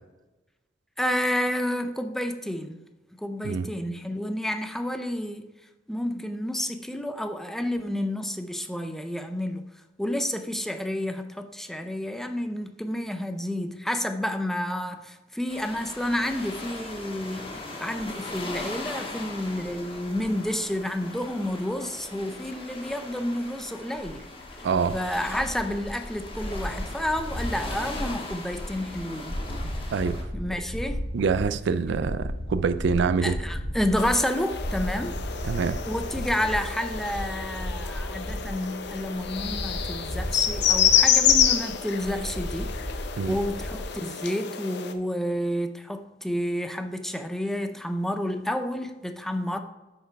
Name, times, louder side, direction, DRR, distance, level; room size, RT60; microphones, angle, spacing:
voice 1, 1.0-2.8 3.1-5.4 5.9-9.6 10.0-24.2 24.9-29.4 30.3-31.0 33.2-35.1 35.8-42.8 43.2-49.6, left 1 dB, ahead, 8 dB, 0.4 m, -30 dB
sound 1, 15.5-30.2, left 2 dB, 30° left, 1.4 m, -39 dB
sound 2, 24.0-43.8, equal, 35° right, 2.7 m, -35 dB
voice 2, 24.6-25.0 29.9-30.2 31.1-33.4 35.4-35.8 43.2-43.4, right 5 dB, 65° right, 12 dB, 0.4 m, -25 dB
sound 3, 34.0-44.9, left 9 dB, 60° left, 0.6 m, -27 dB
7.7 x 4.6 x 4.6 m, 1.1 s
head